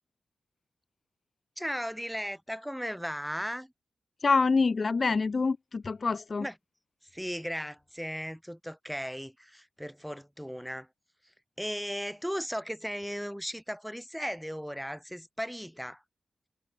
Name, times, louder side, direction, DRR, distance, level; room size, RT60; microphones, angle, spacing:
voice 1, 1.6-3.7 6.4-6.5 7.1-10.9 11.6-16.0, equal, ahead, 4.2 m, -36 dB
voice 2, 4.2-6.5, left 4 dB, 35° left, 0.8 m, -26 dB
wide cardioid pair, 145°, 0 cm